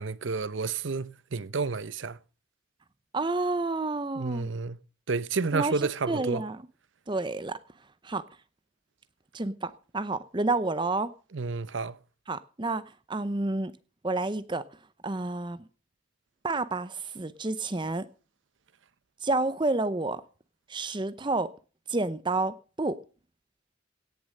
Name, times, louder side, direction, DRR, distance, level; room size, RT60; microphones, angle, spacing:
voice 1, 0.0-2.2 4.2-4.8 5.1-6.4 11.3-12.0, right 4 dB, 70° right, 0.7 m, -30 dB
voice 2, 3.1-4.5 5.5-6.6 7.1-7.6 8.0-8.2 9.3-11.1 12.3-12.8 13.1-13.7 14.0-14.6 15.0-15.6 16.4-18.1 19.2-20.2 20.7-21.5 21.9-23.0, right 2 dB, 25° right, 0.6 m, -29 dB
17.0 x 7.0 x 6.5 m
head